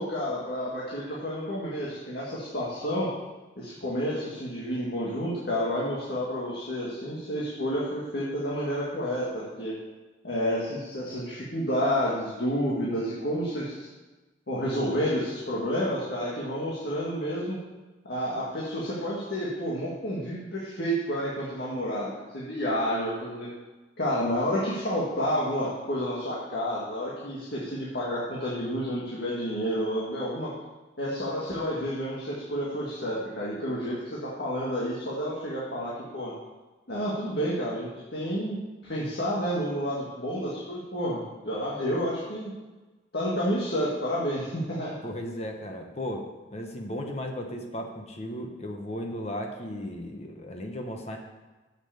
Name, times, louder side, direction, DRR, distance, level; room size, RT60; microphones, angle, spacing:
voice 1, 0.0-3.1 3.6-9.8 10.2-13.8 14.5-17.6 18.1-23.5 24.0-30.5 31.0-36.3 36.9-38.6 38.8-42.5 43.1-44.9, equal, 60° left, -6 dB, 1.9 m, -30 dB
voice 2, 45.0-51.2, equal, 35° left, 3 dB, 1.0 m, -35 dB
7.7 x 7.0 x 7.0 m, 1.2 s
head